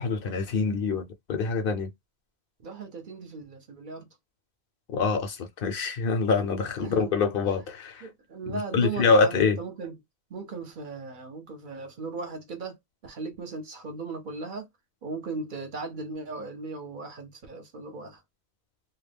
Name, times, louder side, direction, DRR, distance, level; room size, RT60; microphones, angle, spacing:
voice 1, 0.0-1.9 4.9-8.1 8.7-9.6, left 4 dB, 65° left, 0.7 m, -25 dB
voice 2, 2.6-4.1 6.8-7.2 8.0-10.0 10.3-12.8 13.0-14.7 15.0-18.2, right 4 dB, 55° right, 0.8 m, -37 dB
2.2 x 2.2 x 3.2 m
omnidirectional pair, 1.1 m